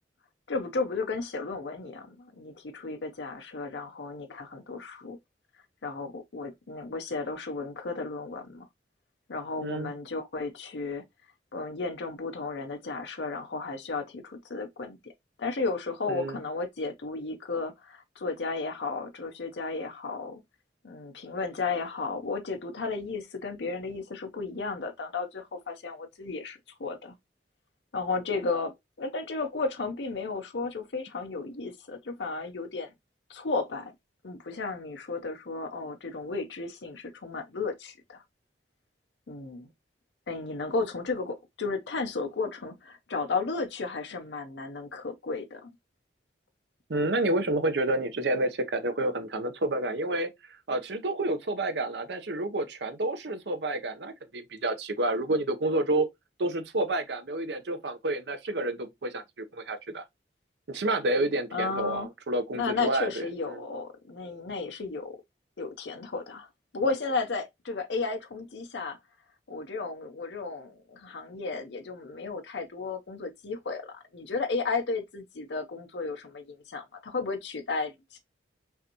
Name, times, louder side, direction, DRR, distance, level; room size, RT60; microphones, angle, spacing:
voice 1, 0.5-5.2 5.8-8.7 9.3-11.1 11.5-15.1 15.4-20.4 20.8-27.1 27.9-32.9 33.3-33.9 34.2-38.2 39.3-39.7 40.3-45.8 61.5-62.1 62.5-65.2 65.6-69.0 69.5-78.2, left 4 dB, 75° left, 0.7 m, -34 dB
voice 2, 9.6-9.9 16.1-16.4 46.9-50.3 50.7-56.1 56.4-60.0 60.7-63.2 63.5-63.6, right 2 dB, 70° right, 0.8 m, -29 dB
5.6 x 2.6 x 2.9 m
head